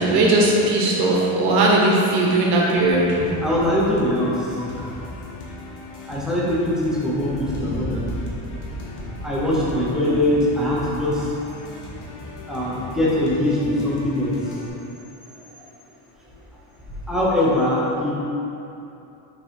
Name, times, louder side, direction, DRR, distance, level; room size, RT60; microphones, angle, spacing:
voice 1, 0.0-3.4 4.6-4.7, right 2 dB, 50° right, -3 dB, 1.3 m, -18 dB
sound 1, 3.3-14.7, left 2 dB, 40° left, 1.0 m, -38 dB
voice 2, 3.4-4.6 6.1-8.1 9.0-11.3 12.5-14.4 17.1-18.1, left 1 dB, ahead, -7 dB, 0.7 m, -22 dB
6.2 x 3.8 x 4.5 m, 2.8 s
cardioid pair, 180°, 48 cm